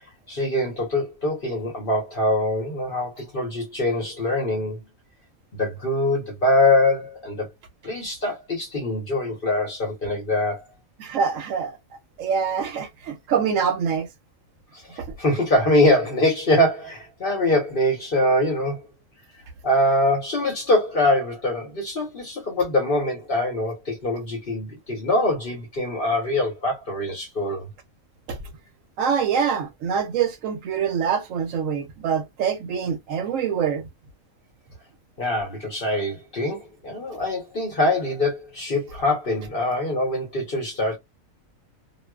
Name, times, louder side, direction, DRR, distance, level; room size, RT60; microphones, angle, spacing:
voice 1, 0.3-4.8 5.5-7.5 7.8-10.6 14.7-18.8 19.6-27.6 35.2-41.0, left 1 dB, 45° left, 1.0 m, -23 dB
voice 2, 11.0-11.8 12.2-14.1 15.0-15.1 28.3-28.4 29.0-33.9, right 7 dB, 70° right, 0.9 m, -25 dB
2.5 x 2.2 x 2.2 m
omnidirectional pair, 1.4 m